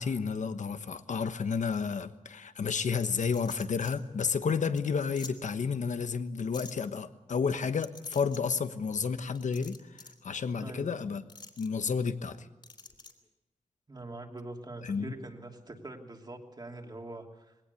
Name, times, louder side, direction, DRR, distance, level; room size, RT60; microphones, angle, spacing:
voice 1, 0.0-11.2 11.6-12.5 14.8-15.1, left 5 dB, 80° left, 11 dB, 1.2 m, -31 dB
sound 1, 3.1-3.9 4.4-4.5 4.8-4.9 5.2-5.3 6.5-6.7 7.8-8.4 9.3-10.2 11.3-11.7 12.6-13.1, left 3 dB, 40° left, 3.1 m, -47 dB
voice 2, 13.9-17.6, right 2 dB, 35° right, 3 dB, 3.0 m, -44 dB
21.0 x 17.5 x 8.3 m, 1.0 s
wide cardioid pair, 105°, 12 cm